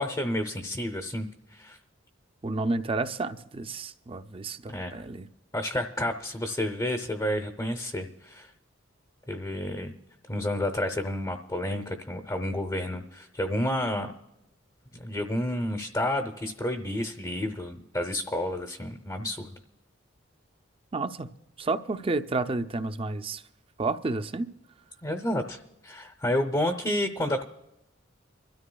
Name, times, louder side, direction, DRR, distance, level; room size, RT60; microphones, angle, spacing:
voice 1, 0.0-1.8 4.7-5.0 5.5-8.5 9.3-9.9 10.3-14.1 14.9-19.6 25.0-25.6 25.8-27.4, left 1 dB, 20° left, 4 dB, 0.7 m, -30 dB
voice 2, 2.4-5.3 20.9-21.3 21.6-23.4 23.8-24.5, right 3 dB, 30° right, 10 dB, 0.5 m, -30 dB
26.0 x 13.0 x 2.3 m, 0.92 s
head